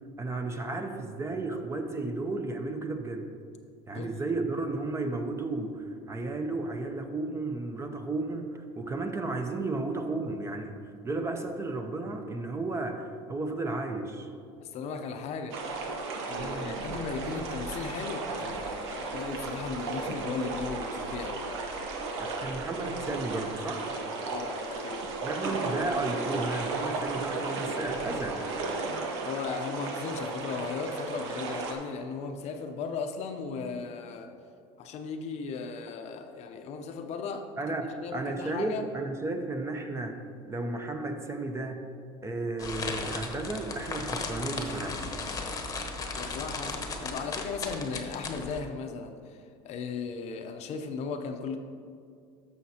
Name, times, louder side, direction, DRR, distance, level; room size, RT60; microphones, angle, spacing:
voice 1, 0.2-3.3 3.9-14.3 16.4-16.8 22.2-23.9 25.2-28.5 37.6-41.9 42.2-45.1, right 2 dB, 20° right, 5 dB, 0.7 m, -33 dB
voice 2, 14.6-15.6 16.2-21.5 24.2-25.1 29.2-34.3 34.8-37.5 37.8-38.8 46.1-51.6, left 5 dB, 50° left, 6 dB, 0.7 m, -36 dB
sound 1, 15.5-31.7, right 3 dB, 85° right, 1.1 m, -34 dB
sound 2, 42.6-48.6, left 3 dB, 25° left, 1.0 m, -36 dB
13.5 x 5.9 x 2.9 m, 2.3 s
supercardioid pair, 115°, 14 cm